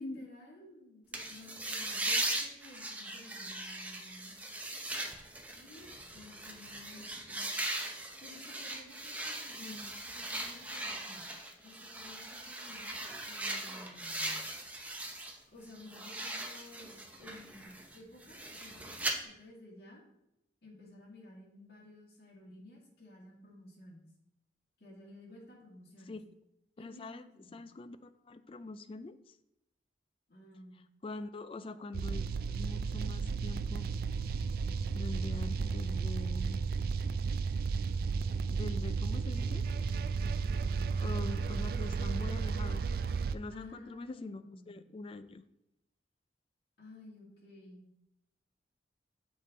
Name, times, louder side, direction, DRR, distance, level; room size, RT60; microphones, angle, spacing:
voice 1, 0.0-4.5 5.6-7.5 8.2-11.3 11.6-14.4 15.5-20.0 20.6-24.0 24.8-26.2 26.8-27.6 30.3-30.8 43.5-44.8 46.8-47.9, left 1 dB, 60° left, -3 dB, 2.1 m, -54 dB
sound 1, 1.1-15.4 15.7-19.1, right 1 dB, 10° right, 0.7 m, -39 dB
voice 2, 9.6-10.0 26.1-26.2 26.8-29.3 31.0-32.2 32.5-33.9 34.9-36.6 38.5-39.7 41.0-42.9 43.3-45.4, left 3 dB, 30° left, 12 dB, 0.3 m, -44 dB
sound 2, 31.9-43.4, right 5 dB, 55° right, 0.3 m, -33 dB
7.1 x 5.2 x 4.1 m, 0.82 s
head